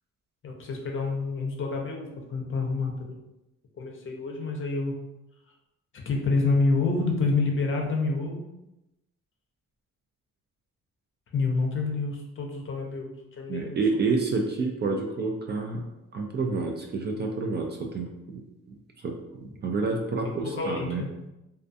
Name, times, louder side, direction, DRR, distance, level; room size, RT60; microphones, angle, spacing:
voice 1, 0.4-3.2 3.8-5.0 6.1-8.4 11.3-13.8 20.2-21.1, left 3 dB, 40° left, 1 dB, 0.6 m, -28 dB
voice 2, 13.5-15.9 16.1-18.4 19.0-21.0, right 3 dB, 35° right, 2 dB, 0.4 m, -29 dB
2.3 x 2.3 x 2.6 m, 0.92 s
cardioid pair, 90°, 30 cm